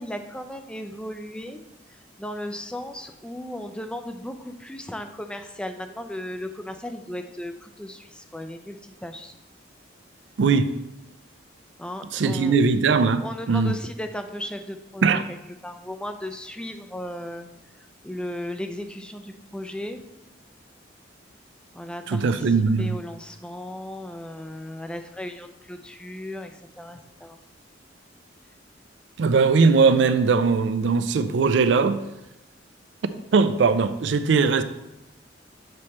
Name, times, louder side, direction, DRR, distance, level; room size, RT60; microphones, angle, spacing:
voice 1, 0.0-1.6 2.2-9.3 11.8-12.6 13.2-15.4 15.6-17.5 18.0-20.0 21.7-22.5 22.8-27.4, left 1 dB, 5° left, 6 dB, 0.4 m, -36 dB
voice 2, 10.4-10.7 12.1-13.7 15.0-15.2 22.1-23.0 29.2-32.0 33.0-34.6, right 4 dB, 70° right, 11 dB, 0.4 m, -20 dB
7.6 x 3.2 x 4.2 m, 0.93 s
head